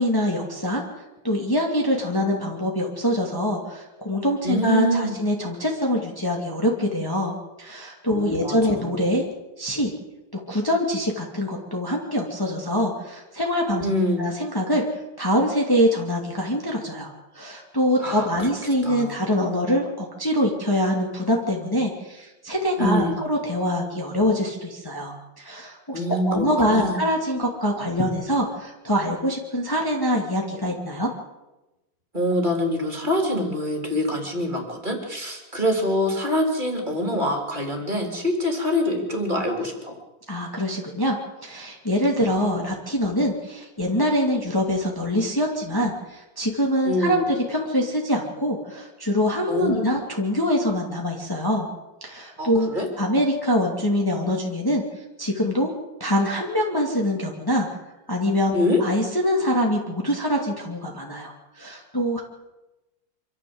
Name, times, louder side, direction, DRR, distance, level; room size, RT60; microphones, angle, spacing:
voice 1, 0.0-7.3 7.6-9.2 9.6-9.9 10.3-13.8 14.2-14.8 15.2-31.1 40.3-41.2 41.4-51.7 52.0-52.7 53.0-54.8 55.2-55.7 56.0-57.7 58.1-58.5 58.8-62.2, equal, 10° left, -1 dB, 2.5 m, -24 dB
voice 2, 4.4-5.2 8.1-8.9 13.8-14.3 18.0-18.5 18.8-19.1 22.8-23.2 25.9-27.0 32.1-40.0 46.9-47.3 49.5-50.0 52.4-52.9 58.5-58.8, left 1 dB, 25° right, 2 dB, 3.8 m, -25 dB
25.5 x 14.0 x 7.9 m, 1.0 s
omnidirectional pair, 2.0 m